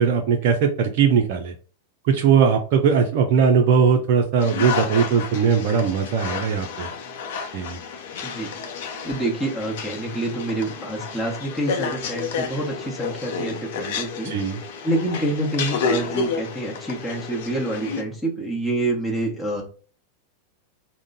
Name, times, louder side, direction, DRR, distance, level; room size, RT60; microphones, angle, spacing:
voice 1, 0.0-1.5 2.1-6.9 7.5-7.8 14.2-14.6, right 6 dB, 50° right, 3 dB, 0.5 m, -19 dB
sound 1, 4.4-18.0, left 5 dB, 55° left, 0.6 m, -31 dB
voice 2, 8.2-8.5 9.0-14.3 14.8-19.6, right 1 dB, 5° left, -4 dB, 1.2 m, -27 dB
3.6 x 2.1 x 3.9 m, 0.40 s
figure-of-eight pair, 90°, 0 cm